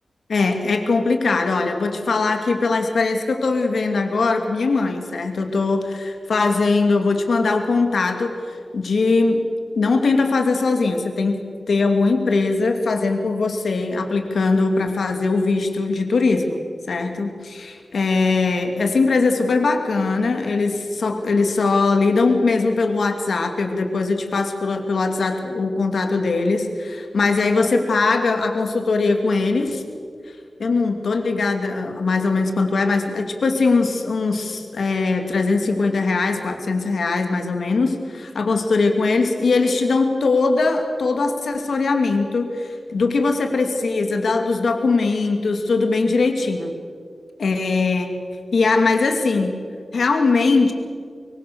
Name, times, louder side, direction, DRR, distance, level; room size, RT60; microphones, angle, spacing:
voice 1, 0.3-9.4 9.7-11.4 11.7-16.6 16.9-29.8 30.6-46.7 47.4-48.1 48.5-49.6 49.9-50.7, left 3 dB, 80° left, 4 dB, 2.7 m, -20 dB
24.0 x 24.0 x 7.1 m, 2.1 s
wide cardioid pair, 105°, 0 cm